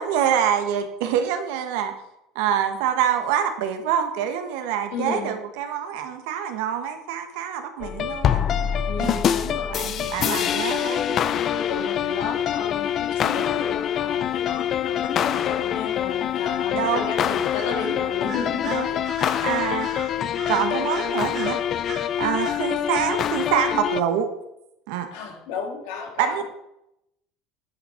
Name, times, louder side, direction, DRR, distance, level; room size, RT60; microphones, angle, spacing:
voice 1, 0.0-1.9 2.3-8.4 9.0-9.2 9.7-11.0 16.7-17.2 18.6-18.9 19.4-19.9 20.5-21.6 22.2-24.3 24.9-25.1 26.2-26.4, right 9 dB, 75° right, 7 dB, 1.3 m, -25 dB
voice 2, 4.9-5.3 7.9-8.0 8.9-9.9 10.2-19.0 25.1-26.4, left 5 dB, 75° left, 2 dB, 2.1 m, -33 dB
sound 1, 7.8-24.0, left 10 dB, 45° left, 0.5 m, -25 dB
Bird vocalization bird call bird song, 17.5-17.9 18.3-22.1 22.4-22.6, right 4 dB, 55° right, 3.2 m, -39 dB
10.5 x 6.2 x 4.5 m, 0.84 s
supercardioid pair, 95°, 0 cm